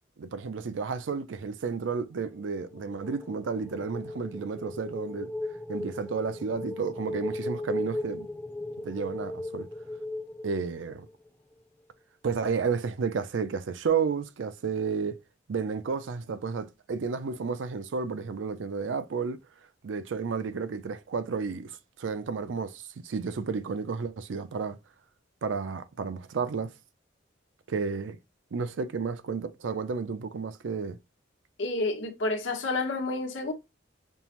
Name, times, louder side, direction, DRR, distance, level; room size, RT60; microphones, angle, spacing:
voice 1, 0.2-5.3 5.7-8.3 8.8-9.7 10.4-11.1 12.2-15.2 15.5-19.4 19.8-24.8 25.4-26.7 27.7-28.2 28.5-31.0, right 5 dB, 75° right, 0.4 m, -32 dB
sound 1, 2.4-11.3, left 1 dB, 10° left, 0.5 m, -37 dB
voice 2, 31.6-33.5, left 2 dB, 90° left, 1.0 m, -29 dB
5.4 x 2.1 x 2.9 m
head